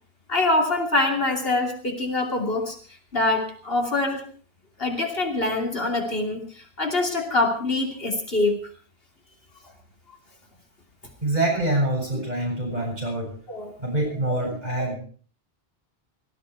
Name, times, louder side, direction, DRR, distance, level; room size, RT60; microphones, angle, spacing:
voice 1, 0.3-2.8 3.1-4.2 4.8-8.6 12.1-12.2 13.5-13.7 14.3-15.0, left 2 dB, 70° left, 2 dB, 3.1 m, -25 dB
voice 2, 11.2-13.4 13.8-15.0, right 1 dB, 40° right, -1 dB, 7.9 m, -25 dB
18.5 x 14.0 x 4.6 m, 0.43 s
omnidirectional pair, 1.0 m